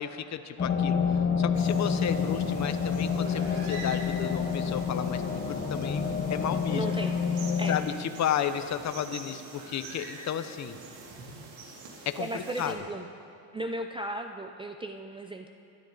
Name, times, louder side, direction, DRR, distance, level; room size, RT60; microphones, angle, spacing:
voice 1, 0.0-6.8 7.7-10.8 12.1-12.8, left 9 dB, 35° left, 10 dB, 0.8 m, -33 dB
sound 1, 0.6-7.8, left 6 dB, 20° left, 1.3 m, -28 dB
sound 2, 1.5-12.7, right 3 dB, 75° right, 2.9 m, -46 dB
voice 2, 6.7-7.1 7.6-7.8 12.2-13.1 13.5-15.6, right 1 dB, 10° right, 5 dB, 0.4 m, -35 dB
22.5 x 12.0 x 4.0 m, 2.5 s
cardioid pair, 125°, 45 cm